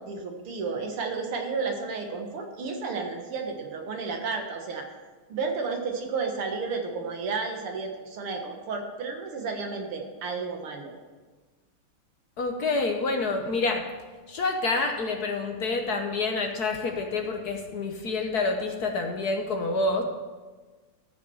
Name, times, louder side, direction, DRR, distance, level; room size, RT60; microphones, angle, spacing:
voice 1, 0.0-4.8 5.3-10.9, right 4 dB, 80° right, 3 dB, 2.4 m, -32 dB
voice 2, 12.4-13.8 14.3-20.0, left 3 dB, 55° left, 4 dB, 1.2 m, -28 dB
14.0 x 5.9 x 7.1 m, 1.3 s
omnidirectional pair, 2.4 m